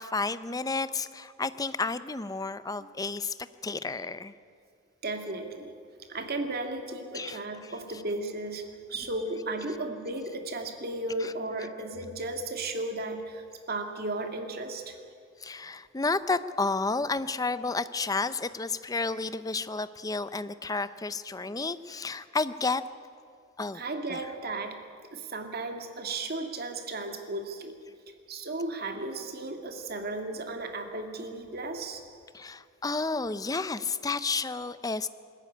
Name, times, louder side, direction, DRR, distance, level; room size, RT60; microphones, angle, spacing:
voice 1, 0.0-3.3 3.6-4.3 7.1-7.4 11.2-11.3 15.4-22.8 23.6-23.8 24.1-24.2 32.3-35.1, left 3 dB, 20° left, 14 dB, 0.6 m, -31 dB
voice 2, 5.0-5.7 6.0-8.6 8.9-15.0 23.7-24.8 25.1-27.8 28.3-32.0, right 2 dB, 50° right, 5 dB, 2.1 m, -35 dB
20.5 x 14.0 x 9.8 m, 2.2 s
head